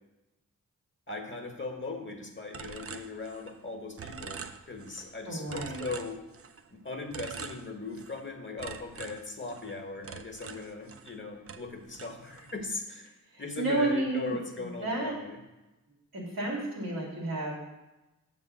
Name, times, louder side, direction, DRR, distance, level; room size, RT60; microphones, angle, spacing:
voice 1, 1.1-6.2 6.7-15.4, left 3 dB, 35° left, 3 dB, 1.3 m, -39 dB
sound 1, 2.5-3.7 4.0-5.1 5.5-6.7 7.1-8.2 8.6-11.2 11.5-12.6, right 6 dB, 40° right, 0.5 m, -44 dB
voice 2, 5.3-5.9 13.3-15.1 16.1-17.5, right 2 dB, 85° right, -4 dB, 2.1 m, -31 dB
6.7 x 3.7 x 6.1 m, 1.0 s
cardioid pair, 40°, 35 cm